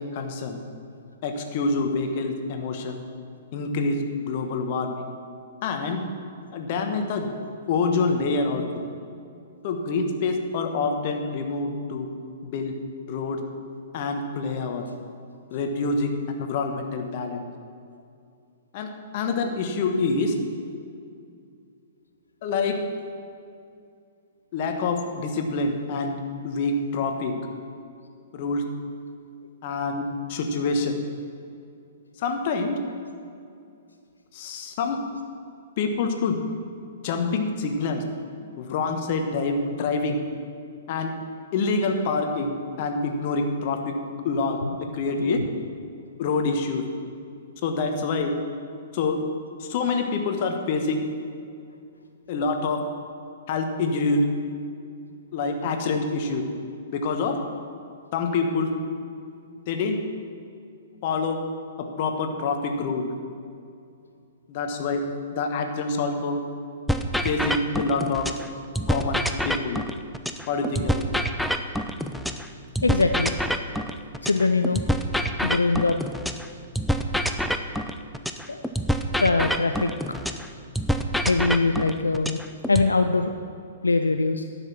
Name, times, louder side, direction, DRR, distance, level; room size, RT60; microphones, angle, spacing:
voice 1, 0.1-0.6 1.2-3.0 3.5-5.1 5.6-6.1 6.5-7.3 7.7-8.6 9.6-12.1 12.4-12.7 13.1-13.4 13.9-14.8 15.5-16.1 16.4-17.4 18.7-20.3 22.4-22.7 24.5-27.3 28.3-28.6 29.6-30.0 30.3-30.9 32.2-32.8 34.3-35.0 35.8-36.3 37.0-38.0 38.6-40.2 40.9-41.1 41.5-42.5 42.8-43.9 44.2-44.6 44.9-45.4 46.2-46.8 47.6-48.3 48.9-49.2 49.6-51.0 52.3-52.8 53.5-54.2 55.3-56.4 56.9-57.4 58.1-58.7 59.7-60.0 61.0-61.4 62.0-63.1 64.5-65.0 65.3-66.4 67.2-68.3 68.9-69.8 70.5-71.0, left 4 dB, 45° left, 5 dB, 1.2 m, -26 dB
sound 1, 66.9-68.5 68.7-72.5 72.7-76.5 76.7-80.5 80.7-82.9, equal, ahead, 0.5 m, -26 dB
voice 2, 72.8-73.3 74.2-74.8 75.4-76.0 78.5-78.6 79.2-79.9 81.2-82.4 82.7-83.3 83.8-84.4, left 3 dB, 80° left, 7 dB, 0.4 m, -22 dB
10.5 x 7.2 x 5.9 m, 2.4 s
figure-of-eight pair, 110°, 0 cm